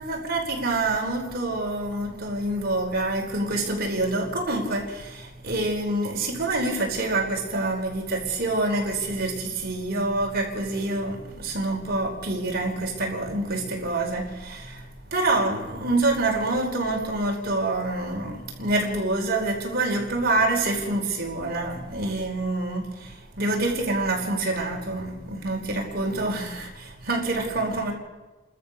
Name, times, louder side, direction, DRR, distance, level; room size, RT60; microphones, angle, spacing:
voice 1, 0.0-14.8 15.1-27.9, right 2 dB, 50° right, 4.9 m, -26 dB
29.5 x 13.5 x 6.6 m
head